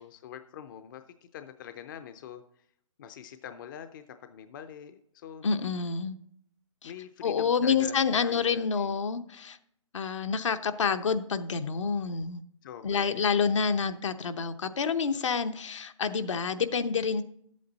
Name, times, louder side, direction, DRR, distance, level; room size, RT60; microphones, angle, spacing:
voice 1, 0.0-2.4 3.0-5.4 6.8-9.0 12.6-13.2, left 9 dB, 40° left, 9 dB, 0.6 m, -45 dB
voice 2, 5.4-6.2 6.8-6.9 7.2-9.6 9.9-12.4 12.8-17.2, left 6 dB, 65° left, 8 dB, 0.9 m, -28 dB
11.5 x 8.5 x 4.0 m, 0.70 s
hypercardioid pair, 145°, 17 cm